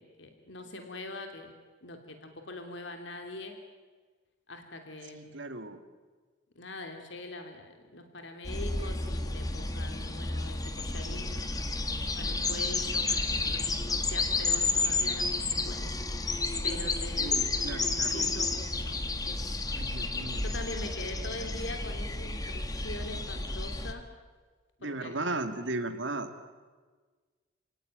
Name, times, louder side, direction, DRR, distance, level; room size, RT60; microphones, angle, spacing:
voice 1, 0.0-1.5 1.8-3.6 4.5-5.4 6.5-11.5 12.1-16.0 16.6-17.4 17.8-19.5 20.4-24.0 24.8-25.2, left 2 dB, 70° left, 5 dB, 3.0 m, -43 dB
voice 2, 5.1-5.8 17.2-18.3 19.7-20.5 24.8-26.3, right 2 dB, 70° right, 8 dB, 2.3 m, -36 dB
sound 1, 8.4-23.9, left 3 dB, 20° left, 1.7 m, -31 dB
29.0 x 17.5 x 9.4 m, 1.4 s
head